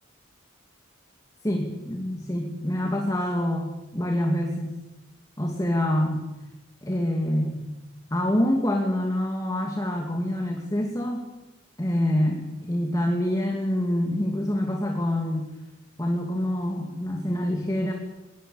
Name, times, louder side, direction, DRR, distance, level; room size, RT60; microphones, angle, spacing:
voice 1, 1.4-4.8 5.4-6.3 6.8-7.7 8.1-11.3 11.8-15.5 16.0-17.9, left 1 dB, 15° left, 2 dB, 2.5 m, -26 dB
21.5 x 20.5 x 8.8 m, 1.0 s
head